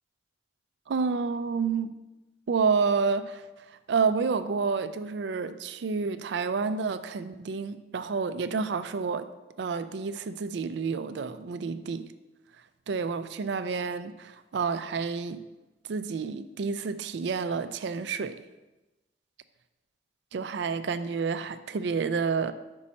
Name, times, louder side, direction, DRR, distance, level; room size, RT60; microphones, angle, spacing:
voice 1, 0.9-1.9 2.5-9.3 9.6-12.1 12.9-15.4 15.9-18.4 20.3-22.5, right 5 dB, 65° right, 0.4 m, -29 dB
5.4 x 4.2 x 6.1 m
head